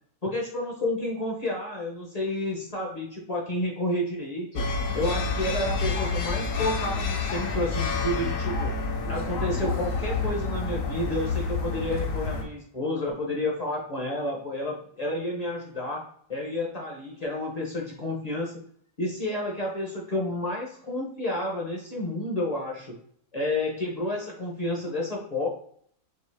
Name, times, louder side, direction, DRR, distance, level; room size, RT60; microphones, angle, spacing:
voice 1, 0.2-4.6 4.9-8.7 9.1-16.0 16.3-18.6 19.0-23.0 23.3-25.5, left 1 dB, 35° left, -2 dB, 0.6 m, -30 dB
sound 1, 4.6-12.4, left 4 dB, 70° left, 1.1 m, -28 dB
4.5 x 2.8 x 3.3 m, 0.63 s
omnidirectional pair, 1.6 m